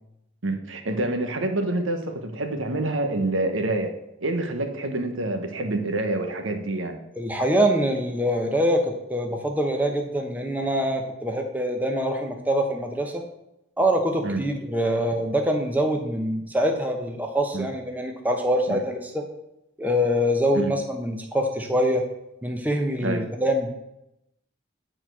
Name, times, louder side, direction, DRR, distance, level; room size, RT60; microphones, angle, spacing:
voice 1, 0.4-3.9 4.2-7.0 14.2-14.4 17.5-17.7 18.7-18.8 20.5-20.7 23.0-23.2, right 2 dB, 90° right, 5 dB, 1.1 m, -27 dB
voice 2, 7.2-13.2 13.8-19.2 19.8-22.0 22.4-23.7, equal, 10° right, 3 dB, 0.8 m, -24 dB
9.1 x 4.4 x 6.1 m, 0.86 s
head